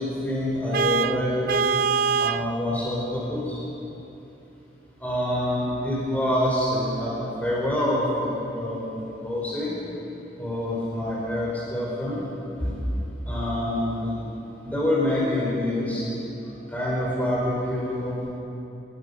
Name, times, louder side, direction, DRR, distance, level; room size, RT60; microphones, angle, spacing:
voice 1, 0.0-1.5 2.2-3.6 5.0-9.8 10.4-12.2 12.6-12.7 13.3-14.2 14.6-16.0 16.7-18.3, left 1 dB, 10° left, -6 dB, 4.6 m, -26 dB
Vehicle horn car horn honking, 0.7-2.5, right 5 dB, 50° right, 0.5 m, -23 dB
24.5 x 19.5 x 5.6 m, 3.0 s
head